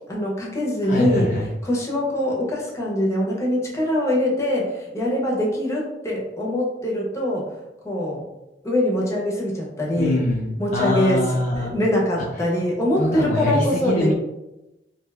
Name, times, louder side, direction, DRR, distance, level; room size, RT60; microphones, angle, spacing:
voice 1, 0.1-1.3 1.6-7.4 7.8-8.2 8.6-10.2 10.6-11.3 11.6-14.1, left 1 dB, 15° left, -3 dB, 0.7 m, -23 dB
voice 2, 0.8-1.5 10.0-11.7 13.0-14.1, left 1 dB, 50° left, -3 dB, 0.5 m, -23 dB
2.7 x 2.2 x 3.2 m, 0.95 s
head